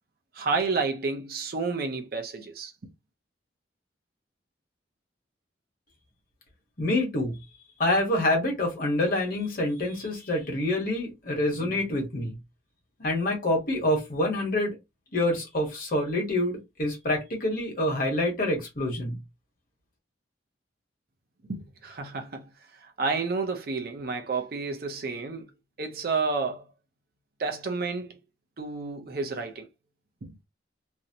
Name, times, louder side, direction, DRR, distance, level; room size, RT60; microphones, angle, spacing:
voice 1, 0.3-2.7 21.4-25.5 25.8-26.7 27.4-28.2 28.6-29.7 30.2-30.4, right 4 dB, 50° right, 0.5 m, -30 dB
voice 2, 6.8-7.3 7.8-12.3 13.0-14.8 15.1-19.2, left 1 dB, 45° left, 1.0 m, -26 dB
2.6 x 2.0 x 2.7 m
head